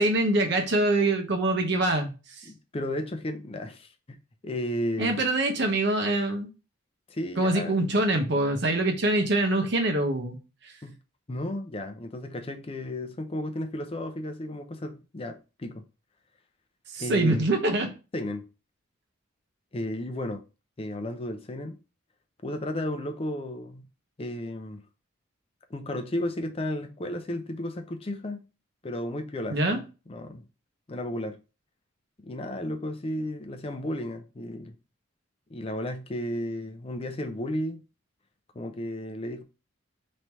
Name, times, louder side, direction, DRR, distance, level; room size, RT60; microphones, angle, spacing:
voice 1, 0.0-2.5 5.0-6.5 7.4-10.4 10.6-10.7 16.9-17.9 29.5-29.8, right 2 dB, 55° right, 0.8 m, -24 dB
voice 2, 2.5-3.9 4.4-5.2 7.1-7.7 10.8-11.0 11.3-15.8 17.0-17.5 18.1-18.4 19.7-20.4 20.8-21.8 22.4-23.8 24.2-24.8 25.7-28.4 28.8-30.4 30.9-31.4 32.2-34.8 35.5-37.8 38.5-39.4, left 1 dB, 30° left, 0.5 m, -33 dB
3.2 x 2.8 x 4.5 m
head